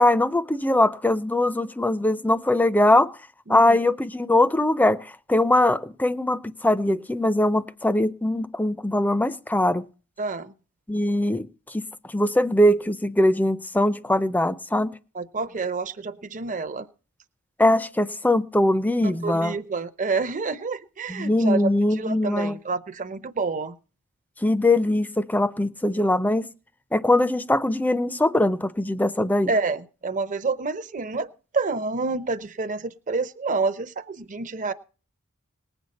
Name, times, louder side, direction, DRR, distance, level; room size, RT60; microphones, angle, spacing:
voice 1, 0.0-3.1 3.5-9.8 10.9-11.5 11.7-11.8 12.1-14.9 17.6-19.5 21.1-22.5 24.4-26.5 26.9-29.5, left 1 dB, 10° left, 0.5 m, -21 dB
voice 2, 3.5-3.8 10.2-10.5 15.1-16.9 19.0-21.6 21.9-23.7 26.0-26.1 29.5-31.3 31.5-34.7, right 4 dB, 35° right, 0.7 m, -28 dB
19.5 x 8.0 x 4.1 m
head